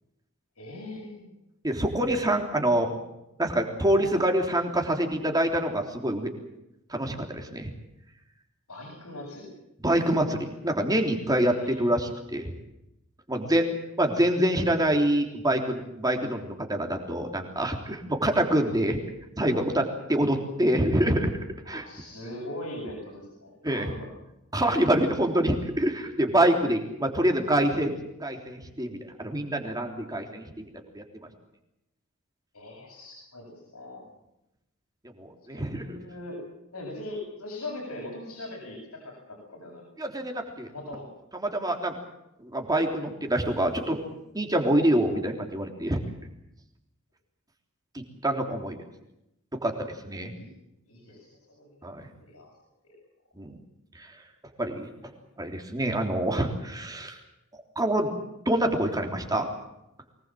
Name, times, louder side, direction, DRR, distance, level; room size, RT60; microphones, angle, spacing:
voice 1, 0.6-1.3 8.7-9.5 11.4-11.8 13.3-13.4 21.6-24.1 32.5-34.0 35.5-36.4 36.7-40.0 40.7-41.1 50.3-50.5 50.8-51.8 52.2-52.5 52.8-53.0, left 1 dB, 75° left, -2 dB, 7.7 m, -41 dB
voice 2, 1.6-2.9 3.4-6.3 6.9-7.7 9.8-12.5 13.3-13.7 14.0-19.0 19.4-21.4 21.7-21.8 23.6-23.9 24.5-27.9 28.2-30.7 30.9-31.0 35.2-36.0 40.0-40.7 41.4-41.9 42.4-44.0 44.3-46.0 47.9-48.8 49.6-50.3 51.8-52.0 53.3-53.6 54.0-54.1 54.6-54.9 55.4-57.2 57.7-58.1 58.4-59.5, right 1 dB, 15° right, 3 dB, 3.4 m, -26 dB
24.0 x 19.5 x 7.7 m, 0.87 s
head